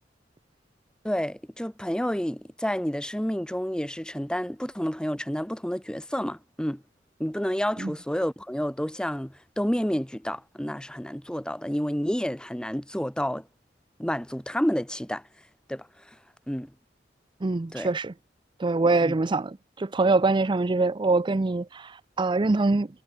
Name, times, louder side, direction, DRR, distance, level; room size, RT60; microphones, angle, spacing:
voice 1, 1.0-6.8 7.2-13.4 14.0-15.2 15.7-15.9 16.5-16.7 17.7-17.9 19.0-19.2, equal, 5° left, 1.3 m, -29 dB
voice 2, 17.4-18.1 18.6-22.9, right 3 dB, 25° right, 0.5 m, -24 dB
head